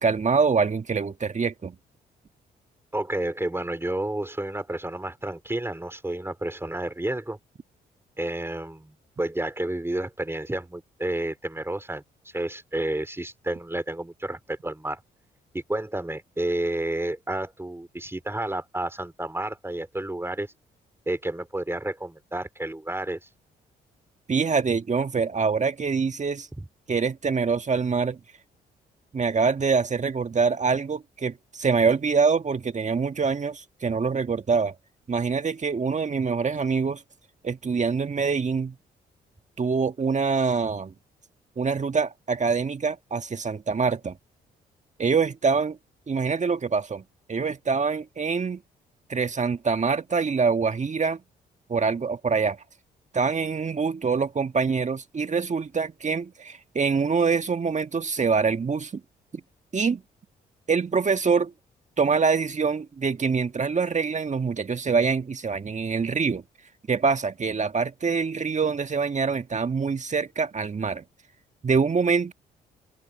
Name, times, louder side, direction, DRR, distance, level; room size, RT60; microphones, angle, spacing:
voice 1, 0.0-1.7 24.3-26.5 26.9-28.2 29.1-34.7 35.1-37.0 37.4-38.7 39.6-40.9 41.6-44.2 45.0-45.8 46.1-47.0 47.3-48.6 49.1-51.2 51.7-52.6 53.1-59.0 59.7-60.0 60.7-61.5 62.0-66.4 66.9-71.0 71.6-72.3, right 5 dB, 35° right, 1.7 m, -25 dB
voice 2, 2.9-7.4 8.2-15.0 15.5-20.5 21.1-23.2 26.6-26.7, right 1 dB, 10° right, 4.0 m, -30 dB
open air
hypercardioid pair, 50°, 20 cm